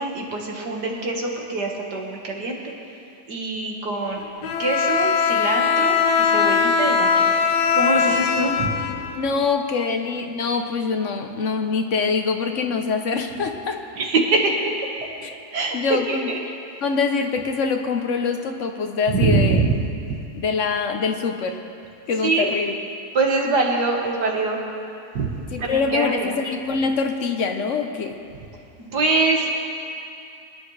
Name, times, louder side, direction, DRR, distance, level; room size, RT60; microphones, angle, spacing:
voice 1, 0.0-2.7 3.3-4.2 4.6-7.4 7.7-8.7 14.0-14.7 15.5-16.4 19.1-19.7 20.1-20.2 22.2-22.5 23.1-24.6 25.1-25.3 25.6-26.4 28.8-29.6, right 3 dB, 80° right, 0 dB, 2.1 m, -24 dB
Bowed string instrument, 4.4-9.5, left 6 dB, 80° left, 1.3 m, -20 dB
voice 2, 9.1-13.8 15.2-15.3 15.7-16.3 16.8-19.6 20.3-21.6 22.1-22.7 25.5-28.2, left 5 dB, 55° left, 5 dB, 1.0 m, -24 dB
24.0 x 10.5 x 3.2 m, 2.6 s
omnidirectional pair, 1.8 m